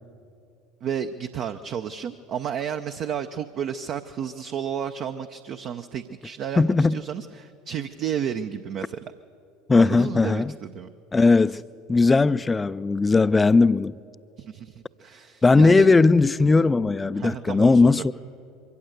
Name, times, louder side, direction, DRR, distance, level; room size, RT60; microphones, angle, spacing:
voice 1, 0.8-9.0 9.8-10.9 14.4-15.9 17.1-18.0, right 8 dB, 45° right, 0.6 m, -32 dB
voice 2, 6.6-7.0 9.7-10.5 11.1-11.6 11.9-14.0 15.4-18.1, left 3 dB, 15° left, 0.4 m, -18 dB
23.0 x 15.5 x 8.0 m
figure-of-eight pair, 70°, 0 cm